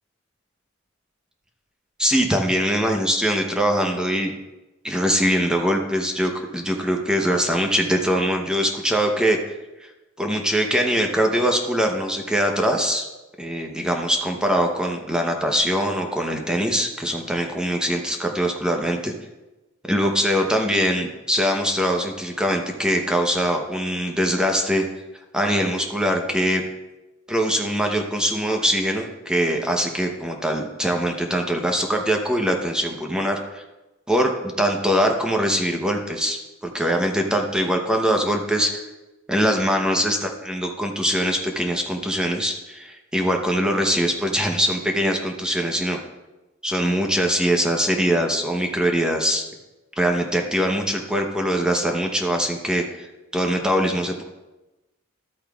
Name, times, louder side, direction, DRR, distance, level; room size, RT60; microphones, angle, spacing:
voice 1, 2.0-4.3 4.8-9.4 9.8-9.9 10.2-13.1 13.4-19.1 19.9-24.8 25.3-26.6 27.3-33.6 34.1-38.8 39.3-46.0 46.6-49.4 50.0-54.2, equal, 5° right, 2 dB, 0.8 m, -22 dB
13.0 x 8.6 x 2.4 m, 1.1 s
head